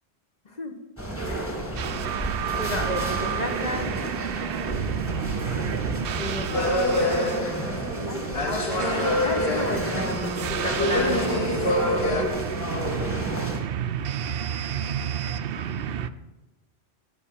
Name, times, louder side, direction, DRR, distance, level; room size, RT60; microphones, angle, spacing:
sound 1, 1.0-13.6, right 1 dB, 10° left, 2.1 m, -32 dB
sound 2, 1.8-16.1, right 9 dB, 65° right, 0.7 m, -31 dB
voice 1, 2.5-3.9 6.1-8.5 8.9-11.7, left 2 dB, 40° left, 5 dB, 1.3 m, -33 dB
sound 3, 6.5-8.0 8.3-10.4 10.7-12.2, left 1 dB, 70° left, 1.5 m, -26 dB
12.5 x 5.9 x 8.6 m, 1.1 s
omnidirectional pair, 1.1 m